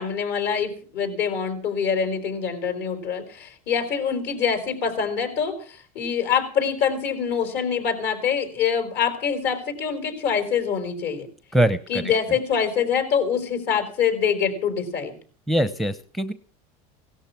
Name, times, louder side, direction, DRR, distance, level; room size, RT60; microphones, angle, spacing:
voice 1, 0.0-11.3 11.9-15.1, left 7 dB, 60° left, 8 dB, 4.7 m, -25 dB
voice 2, 11.5-12.0 15.5-16.3, right 1 dB, ahead, 12 dB, 0.7 m, -22 dB
17.5 x 13.0 x 6.0 m, 0.42 s
supercardioid pair, 130°, 20 cm